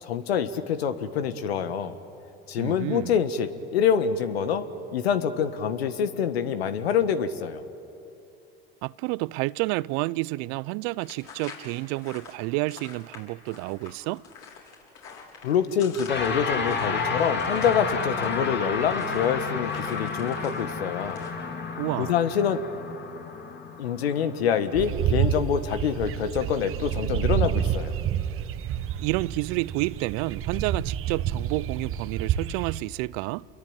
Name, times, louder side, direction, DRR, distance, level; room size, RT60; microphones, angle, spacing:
voice 1, 0.0-1.9 2.5-4.7 4.9-7.6 15.4-21.2 22.0-22.6 23.8-27.9, left 7 dB, 85° left, 1.5 m, -26 dB
voice 2, 2.6-3.2 8.8-14.2 21.8-22.1 29.0-33.5, right 22 dB, 60° right, 0.6 m, -30 dB
sound 1, 11.0-20.6 20.9-21.3, left 5 dB, 55° left, 6.9 m, -46 dB
sound 2, 16.1-25.5, left 5 dB, 35° left, 3.0 m, -31 dB
sound 3, 24.7-32.8, right 10 dB, 45° right, 1.2 m, -29 dB
29.0 x 22.5 x 8.9 m
hypercardioid pair, 80°, 30 cm